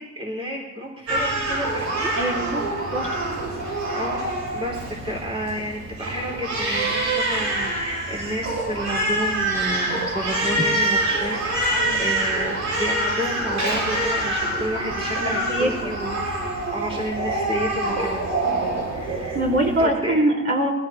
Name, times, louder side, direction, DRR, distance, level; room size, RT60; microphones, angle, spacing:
voice 1, 0.0-2.1 3.7-4.2 4.5-16.2 16.7-18.2 18.9-19.4 19.8-20.2, equal, 20° right, -2 dB, 3.5 m, -31 dB
Crying sobbing, 1.1-19.9, right 1 dB, 70° right, 5.7 m, -26 dB
voice 2, 2.1-2.6 2.9-3.1 10.5-10.6 11.7-12.0 15.2-15.7 19.3-20.7, right 1 dB, 45° right, -2 dB, 5.3 m, -23 dB
21.5 x 16.5 x 3.2 m, 1.0 s
cardioid pair, 90°, 30 cm